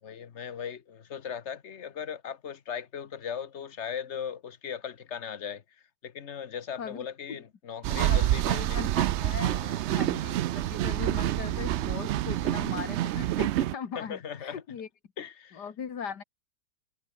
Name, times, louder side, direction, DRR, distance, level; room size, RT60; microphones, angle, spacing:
voice 1, 0.0-8.9 9.4-9.8 13.9-14.6 15.2-15.6, left 8 dB, 45° left, 1.3 m, -38 dB
voice 2, 6.8-7.4 8.1-9.5 9.9-14.9 15.5-16.2, left 7 dB, 90° left, 2.3 m, -39 dB
sound 1, 7.8-13.7, right 13 dB, 85° right, 0.6 m, -27 dB
omnidirectional pair, 1.7 m